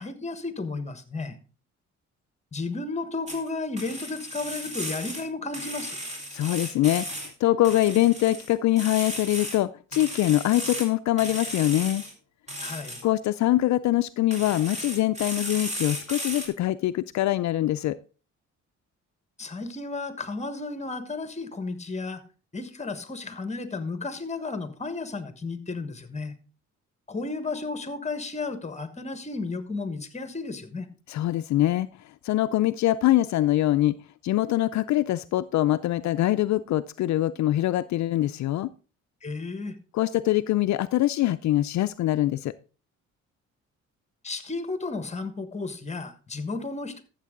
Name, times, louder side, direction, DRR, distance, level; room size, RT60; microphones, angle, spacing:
voice 1, 0.0-1.4 2.5-6.0 12.6-13.0 19.4-22.2 22.5-26.4 27.1-30.9 39.2-39.8 44.2-47.0, left 3 dB, 20° left, 11 dB, 1.4 m, -33 dB
sound 1, 3.3-3.5 3.8-5.2 5.5-7.3 7.6-9.6 9.9-10.9 11.2-12.1 12.5-13.0 14.3-16.5, equal, 25° right, 4.1 m, -35 dB
voice 2, 6.3-12.0 13.0-18.0 31.1-31.9 32.2-34.0 34.2-38.7 39.9-42.5, left 14 dB, 65° left, 11 dB, 0.5 m, -23 dB
13.0 x 7.4 x 3.7 m, 0.35 s
cardioid pair, 90°, 30 cm